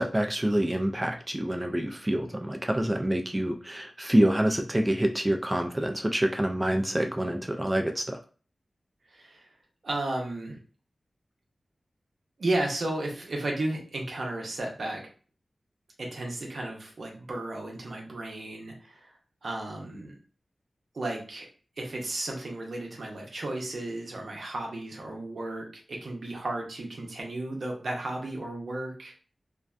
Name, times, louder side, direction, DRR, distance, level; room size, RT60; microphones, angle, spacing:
voice 1, 0.0-8.2, right 1 dB, 20° right, 4 dB, 0.4 m, -27 dB
voice 2, 9.1-9.5 9.8-10.6 12.4-15.0 16.0-19.1 19.4-20.2 20.9-21.5 21.8-29.2, right 2 dB, 75° right, 0 dB, 0.7 m, -34 dB
2.5 x 2.1 x 2.4 m, 0.39 s
cardioid pair, 40°, 0 cm